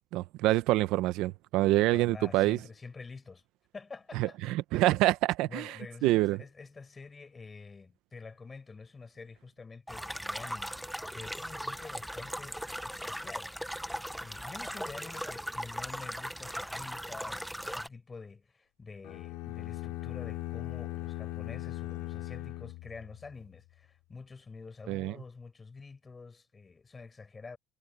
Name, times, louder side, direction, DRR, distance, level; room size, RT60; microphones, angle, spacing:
voice 1, 0.1-2.6 4.2-5.7 6.0-6.4 24.9-25.1, right 17 dB, 70° right, 0.7 m, -26 dB
voice 2, 1.6-3.4 3.7-4.4 4.7-4.8 5.5-13.5 14.2-27.6, left 4 dB, 20° left, 6.5 m, -47 dB
sound 1, 9.9-17.9, equal, ahead, 0.7 m, -38 dB
sound 2, 19.0-23.4, left 19 dB, 80° left, 3.5 m, -39 dB
cardioid pair, 155°, 0 cm